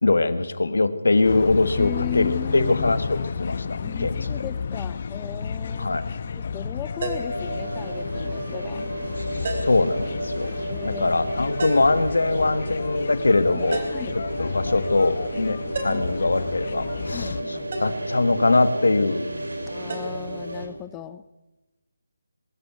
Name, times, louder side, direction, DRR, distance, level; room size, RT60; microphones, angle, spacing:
voice 1, 0.0-4.1 5.8-6.1 9.2-10.6 10.8-13.8 14.4-15.6 15.8-19.3, left 2 dB, 75° left, 10 dB, 1.9 m, -22 dB
sound 1, 1.2-17.4, left 5 dB, 45° left, 1.3 m, -32 dB
voice 2, 1.8-3.0 3.8-6.0 6.4-8.8 10.7-11.3 13.5-14.2 17.1-17.7 19.7-21.2, left 13 dB, 15° left, 14 dB, 0.7 m, -37 dB
sound 2, 7.0-7.4 9.5-9.9 11.6-12.0 13.7-14.1 15.7-16.2 17.7-18.0 19.9-20.1, right 3 dB, 50° right, 4.2 m, -30 dB
sound 3, 7.3-20.7, right 1 dB, 90° right, 4.5 m, -32 dB
23.5 x 13.5 x 9.4 m, 1.0 s
figure-of-eight pair, 160°, 0 cm